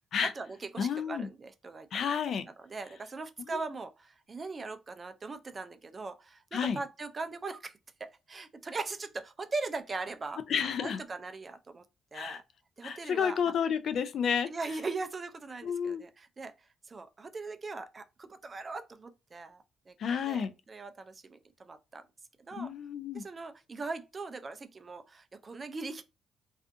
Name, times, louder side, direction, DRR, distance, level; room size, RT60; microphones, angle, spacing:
voice 1, 0.2-2.1 2.5-10.4 10.8-11.8 12.1-12.4 12.8-13.5 14.5-16.5 16.9-22.1 22.5-22.7 23.1-26.0, right 3 dB, 35° right, 0.3 m, -40 dB
voice 2, 0.8-1.3 1.9-2.5 3.5-3.6 6.5-6.8 10.5-11.0 12.1-12.4 12.8-14.5 15.6-16.0 20.0-20.5 22.6-23.2, left 7 dB, 65° left, 0.3 m, -31 dB
2.4 x 2.4 x 2.5 m
cardioid pair, 90°, 0 cm